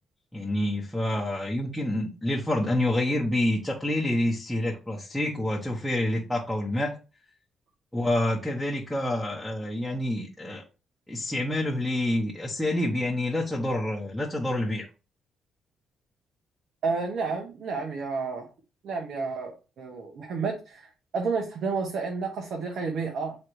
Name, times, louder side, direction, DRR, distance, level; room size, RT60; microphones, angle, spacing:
voice 1, 0.3-7.0 7.9-10.6 11.1-14.9, left 1 dB, ahead, 1.2 m, -27 dB
voice 2, 16.8-18.5 18.8-23.4, right 4 dB, 65° right, 1.3 m, -31 dB
9.2 x 3.2 x 3.2 m
cardioid pair, 90°, 0 cm